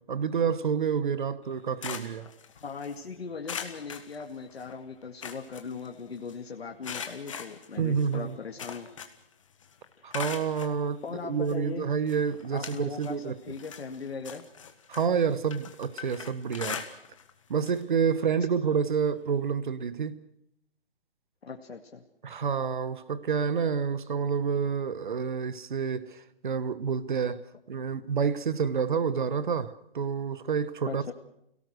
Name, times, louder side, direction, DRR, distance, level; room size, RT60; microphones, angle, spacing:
voice 1, 0.0-2.3 7.8-8.3 10.0-13.4 14.9-16.8 17.5-20.2 22.2-27.4 27.7-31.1, right 6 dB, 55° right, 1.2 m, -28 dB
sound 1, 1.4-3.0 3.4-4.7 5.0-6.3 6.8-9.3 9.6-10.8 11.5-11.6 12.1-13.2 13.5-17.3 17.6-17.8 18.2-18.3 19.5-19.6, left 7 dB, 30° left, 1.6 m, -41 dB
voice 2, 2.6-8.9 11.0-11.9 12.5-14.4 21.4-22.0 30.9-31.1, left 5 dB, 85° left, 2.2 m, -39 dB
29.5 x 18.0 x 6.5 m
hypercardioid pair, 175°, 30 cm